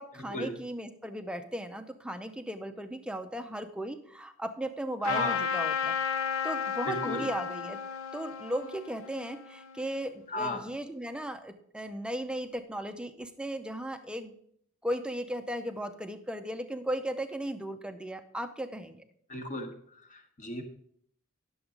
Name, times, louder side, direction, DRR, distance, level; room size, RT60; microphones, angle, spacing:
voice 1, 0.0-7.8 8.1-14.3 14.8-19.0, right 1 dB, 5° right, 8 dB, 0.5 m, -36 dB
Trumpet, 5.0-10.1, left 7 dB, 75° left, 0.6 m, -33 dB
voice 2, 5.0-5.4 6.9-7.3 10.3-10.6 19.3-20.6, left 1 dB, 35° left, 4 dB, 1.1 m, -35 dB
10.5 x 7.0 x 3.7 m, 0.66 s
head